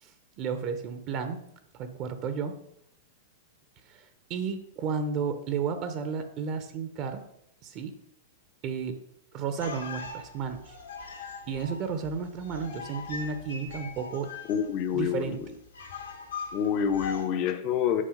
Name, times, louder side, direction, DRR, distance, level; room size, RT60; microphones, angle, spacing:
voice 1, 0.4-1.4 1.7-2.6 3.9-7.2 7.6-8.0 8.6-9.0 9.3-10.7 11.5-14.3 14.9-15.4, right 6 dB, 45° right, 9 dB, 1.0 m, -32 dB
sound 1, 9.6-17.2, left 4 dB, 80° left, 2.2 m, -41 dB
voice 2, 14.5-15.4 16.5-18.0, left 8 dB, 45° left, 7 dB, 0.9 m, -27 dB
8.8 x 4.7 x 5.2 m, 0.74 s
hypercardioid pair, 100°, 0 cm